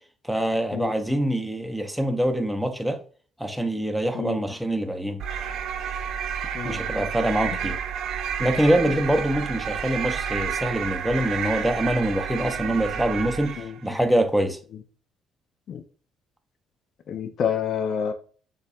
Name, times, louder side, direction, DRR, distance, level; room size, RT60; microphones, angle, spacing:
voice 1, 0.2-3.0 3.4-5.2 6.6-7.8 8.4-13.6 13.8-14.6, right 1 dB, ahead, 0.5 m, -24 dB
sound 1, 5.2-13.8, right 7 dB, 70° right, 0.3 m, -30 dB
voice 2, 17.1-18.1, left 7 dB, 60° left, 0.4 m, -28 dB
6.4 x 2.3 x 2.3 m
supercardioid pair, 65°, 0 cm